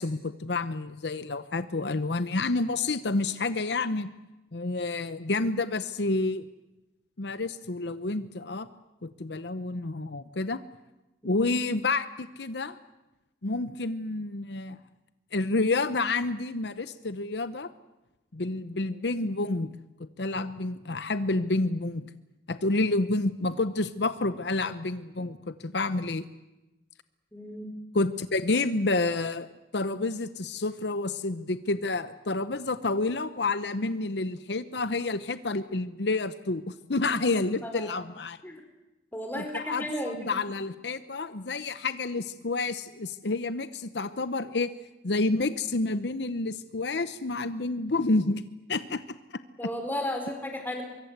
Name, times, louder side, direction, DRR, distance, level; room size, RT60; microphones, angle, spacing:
voice 1, 0.0-4.1 4.5-6.5 7.2-8.7 9.0-10.6 11.2-12.8 13.4-14.8 15.3-17.7 18.3-19.7 20.0-22.1 22.5-26.3 27.9-38.4 39.3-44.7 45.0-48.4 48.7-49.1, left 3 dB, 70° left, 13 dB, 0.9 m, -29 dB
voice 2, 27.3-27.7 37.6-37.9 38.4-38.6 39.1-40.4 49.6-50.8, left 1 dB, 10° left, 4 dB, 4.5 m, -34 dB
24.5 x 23.5 x 8.1 m, 1.0 s
head